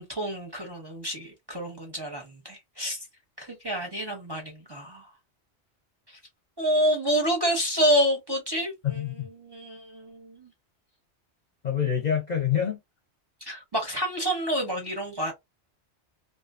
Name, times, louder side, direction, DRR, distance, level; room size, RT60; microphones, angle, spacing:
voice 1, 0.0-3.0 3.4-5.1 6.1-6.2 6.6-10.5 13.4-15.3, equal, 25° right, 0.6 m, -28 dB
voice 2, 8.8-9.3 11.6-12.8, left 9 dB, 50° left, 0.6 m, -26 dB
2.5 x 2.2 x 2.4 m
omnidirectional pair, 1.1 m